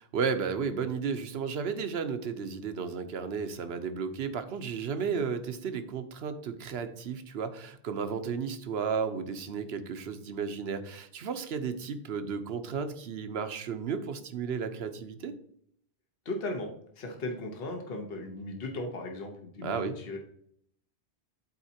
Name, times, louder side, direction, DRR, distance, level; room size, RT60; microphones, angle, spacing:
voice 1, 0.1-15.4 19.6-19.9, right 6 dB, 65° right, 9 dB, 1.0 m, -33 dB
voice 2, 16.2-16.7 17.0-20.2, left 2 dB, 60° left, 3 dB, 1.3 m, -37 dB
12.0 x 4.2 x 2.8 m, 0.67 s
omnidirectional pair, 1.1 m